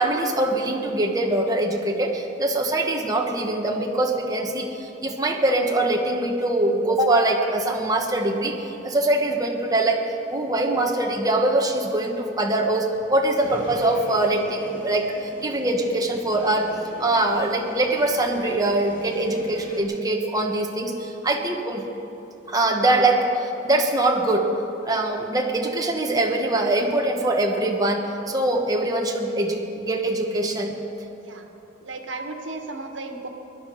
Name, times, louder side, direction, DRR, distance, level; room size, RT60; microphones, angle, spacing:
voice 1, 0.0-8.6 8.8-10.0 10.3-16.7 17.0-21.8 22.5-24.5 24.8-30.7, right 2 dB, 20° right, 1 dB, 1.2 m, -23 dB
sound 1, 13.4-19.8, equal, 50° left, 2.4 m, -40 dB
voice 2, 31.8-33.3, right 3 dB, 85° right, 4 dB, 1.5 m, -34 dB
23.0 x 11.0 x 5.0 m, 3.0 s
head